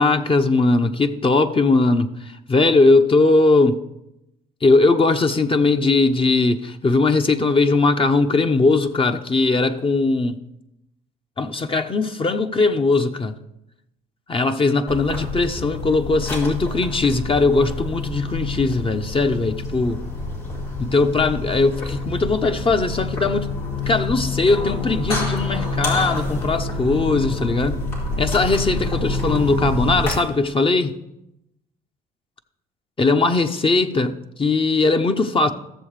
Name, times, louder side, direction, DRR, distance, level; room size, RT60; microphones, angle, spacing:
voice 1, 0.0-3.8 4.6-10.4 11.4-13.4 14.3-20.0 20.8-23.5 23.9-27.8 28.2-31.0 33.0-34.1 34.4-35.5, left 3 dB, 30° left, 0.8 m, -19 dB
sound 1, 14.9-30.1, left 2 dB, 90° left, 2.6 m, -27 dB
14.0 x 7.1 x 3.3 m
hypercardioid pair, 60°, 18 cm